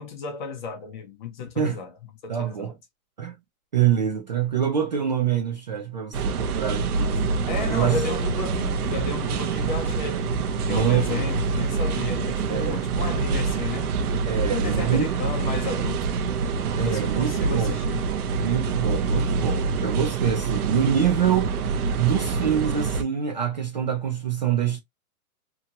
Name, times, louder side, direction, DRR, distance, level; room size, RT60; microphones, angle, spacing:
voice 1, 0.0-1.9 2.2-2.8 7.5-13.9 14.4-16.1 16.7-18.1, left 4 dB, 35° left, 0.7 m, -33 dB
voice 2, 2.3-2.7 3.2-3.3 3.7-7.2 7.7-8.0 10.7-11.3 12.5-12.8 14.3-15.1 16.8-17.8 18.4-24.8, right 8 dB, 35° right, 0.4 m, -25 dB
sound 1, 6.1-23.0, right 4 dB, 90° right, 0.8 m, -26 dB
2.9 x 2.3 x 2.8 m
hypercardioid pair, 170°, 43 cm